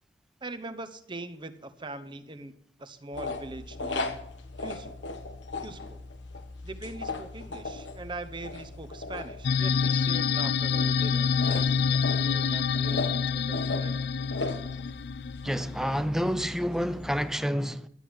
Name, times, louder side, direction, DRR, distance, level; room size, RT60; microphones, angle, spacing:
voice 1, 0.4-4.1 4.6-5.0 5.6-6.0 6.6-14.0, right 2 dB, 25° right, 0.9 m, -42 dB
sound 1, 3.1-17.3, left 3 dB, 80° left, 1.4 m, -38 dB
sound 2, 9.4-16.0, left 6 dB, 65° left, 0.4 m, -27 dB
voice 2, 15.4-17.9, equal, 5° right, 0.6 m, -29 dB
12.0 x 10.0 x 7.7 m
head